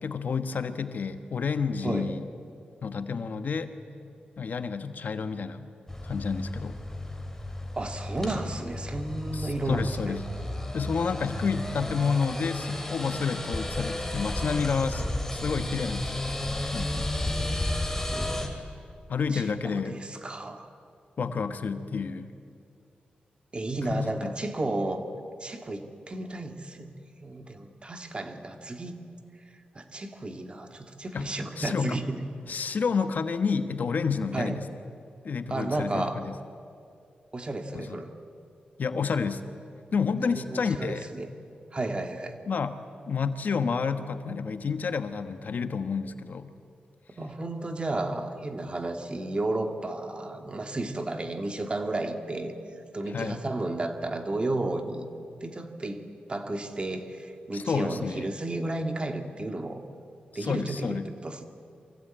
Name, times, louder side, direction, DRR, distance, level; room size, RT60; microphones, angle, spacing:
voice 1, 0.0-2.3 2.8-3.7 4.4-5.7 6.0-6.8 9.3-10.2 10.7-15.0 15.3-16.4 16.7-17.1 19.1-20.0 21.2-22.3 23.9-24.3 31.1-31.3 31.6-32.0 32.5-34.6 35.2-36.3 37.7-38.0 38.8-39.4 39.9-41.0 42.5-42.8 43.1-46.5 53.1-53.4 57.5-58.3 60.3-61.1, left 5 dB, 65° left, 10 dB, 1.2 m, -30 dB
sound 1, 5.9-18.5, left 1 dB, 10° left, 3.1 m, -33 dB
voice 2, 7.8-10.2 18.1-18.6 19.3-20.7 23.5-25.0 25.4-29.0 29.8-32.2 34.3-34.6 35.5-36.2 37.3-38.1 40.3-41.3 41.7-42.4 47.1-52.5 52.9-55.1 55.4-56.0 56.3-59.8 60.4-61.5, right 2 dB, 35° right, 6 dB, 2.0 m, -33 dB
24.0 x 16.0 x 8.9 m, 2.4 s
cardioid pair, 70°, 3 cm